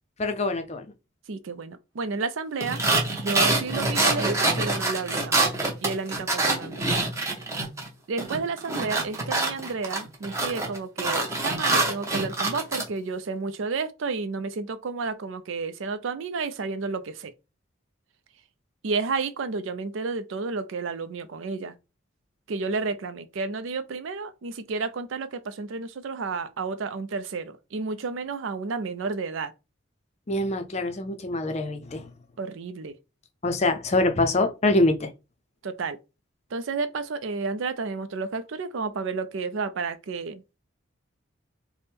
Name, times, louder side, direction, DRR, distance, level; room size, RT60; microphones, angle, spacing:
voice 1, 0.2-0.8 30.3-32.1 33.4-35.1, left 2 dB, 30° left, 0.5 m, -24 dB
voice 2, 1.3-2.8 3.2-5.5 5.8-6.8 8.1-17.3 18.8-21.8 22.5-29.5 32.4-33.0 35.6-36.0 36.5-40.4, right 4 dB, 70° right, 0.4 m, -31 dB
sound 1, 2.6-7.9 8.2-12.9, right 2 dB, 15° right, 0.7 m, -25 dB
3.4 x 2.1 x 4.3 m
head